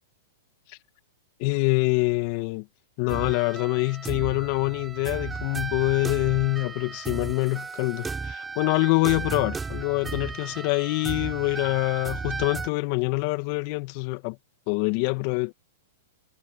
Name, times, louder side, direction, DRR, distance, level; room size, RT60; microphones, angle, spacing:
voice 1, 1.4-2.7 3.0-14.4 14.7-15.5, left 27 dB, 50° left, 1.8 m, -25 dB
sound 1, 3.1-12.7, right 4 dB, 15° right, 8.0 m, -35 dB
hypercardioid pair, 115°, 0 cm